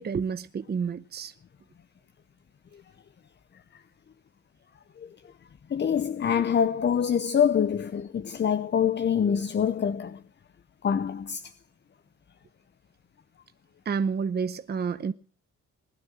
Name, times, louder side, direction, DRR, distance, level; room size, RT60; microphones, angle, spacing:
voice 1, 0.0-1.3 13.9-15.1, right 6 dB, 35° right, 0.8 m, -29 dB
voice 2, 5.7-10.2 10.8-11.5, left 8 dB, 35° left, 0.8 m, -25 dB
19.5 x 9.7 x 7.5 m
cardioid pair, 90°, 30 cm